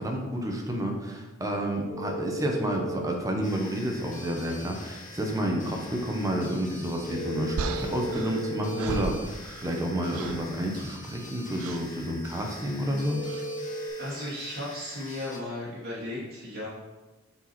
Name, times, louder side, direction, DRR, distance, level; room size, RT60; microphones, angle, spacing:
voice 1, 0.0-13.2, equal, 15° right, 1 dB, 1.0 m, -30 dB
sound 1, 1.9-3.0 7.0-9.0 13.0-13.9, equal, 65° left, 2.3 m, -35 dB
sound 2, 3.4-15.4, left 2 dB, 40° left, 1.3 m, -46 dB
sound 3, 7.6-9.9 10.1-10.5 11.6-11.9 13.3-13.5, right 4 dB, 90° right, 0.4 m, -36 dB
voice 2, 14.0-16.7, left 1 dB, 50° right, -8 dB, 2.3 m, -35 dB
6.9 x 4.6 x 4.3 m, 1.1 s
head